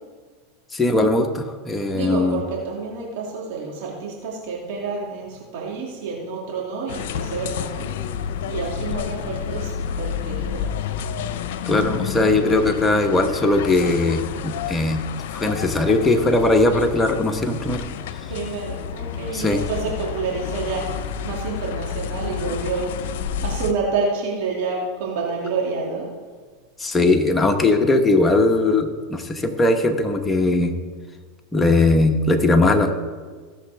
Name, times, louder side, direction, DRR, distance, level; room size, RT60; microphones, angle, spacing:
voice 1, 0.7-2.4 11.7-15.0 15.3-17.8 19.3-19.6 26.8-30.7 31.5-32.9, left 2 dB, 15° left, 4 dB, 1.1 m, -19 dB
voice 2, 1.7-7.9 8.5-10.7 18.3-22.9 23.4-26.1, right 4 dB, 65° right, -3 dB, 2.4 m, -28 dB
sound 1, 6.9-23.7, left 8 dB, 70° left, 0.7 m, -30 dB
16.5 x 7.1 x 3.5 m, 1.5 s
hypercardioid pair, 115°, 0 cm